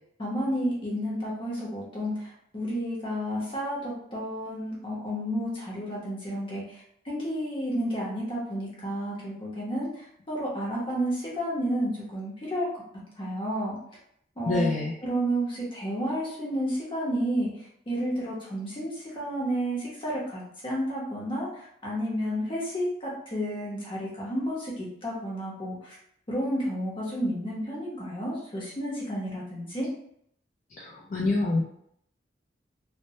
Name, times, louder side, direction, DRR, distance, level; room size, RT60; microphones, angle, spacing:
voice 1, 0.2-12.8 13.2-13.8 14.4-14.7 15.0-17.5 17.9-26.0 26.3-29.9, equal, 30° left, -5 dB, 0.8 m, -31 dB
voice 2, 14.5-14.9 30.7-31.6, left 2 dB, 45° left, -4 dB, 0.4 m, -26 dB
2.1 x 2.1 x 2.7 m, 0.70 s
head